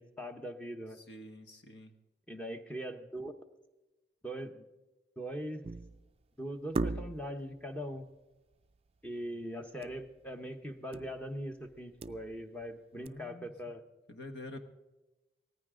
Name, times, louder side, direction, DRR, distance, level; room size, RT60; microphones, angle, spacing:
voice 1, 0.0-1.0 2.3-3.3 4.2-4.7 5.2-5.6 6.4-8.0 9.0-13.8, equal, 10° left, 5 dB, 0.9 m, -41 dB
voice 2, 1.1-1.9 12.9-13.5 14.1-14.6, left 1 dB, 75° left, 6 dB, 1.4 m, -47 dB
sound 1, 5.6-6.1 6.7-7.4 9.8-10.1 10.3-10.4 10.9-11.2 11.7-12.6 13.1-13.2, right 2 dB, 35° right, 0.4 m, -37 dB
18.0 x 15.0 x 3.8 m, 1.1 s
head